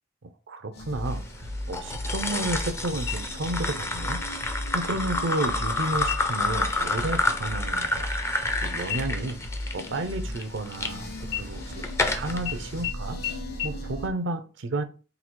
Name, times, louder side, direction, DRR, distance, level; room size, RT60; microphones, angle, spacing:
voice 1, 0.2-8.1 8.6-9.4 9.7-11.9 12.1-13.2 13.6-14.8, right 2 dB, 65° right, 0.6 m, -32 dB
sound 1, 0.7-14.1, left 1 dB, 55° left, 1.3 m, -36 dB
sound 2, 1.7-10.9 11.5-12.4, left 2 dB, 15° left, 0.5 m, -29 dB
sound 3, 3.1-3.7 4.1-4.2 4.8-5.3 6.0-6.5 6.9-7.2 7.5-8.6 8.9-10.9 11.3-12.1 12.5-12.6 12.8-12.9 13.2-13.3 13.6-13.7, left 12 dB, 80° left, 0.7 m, -36 dB
3.9 x 2.4 x 4.4 m
head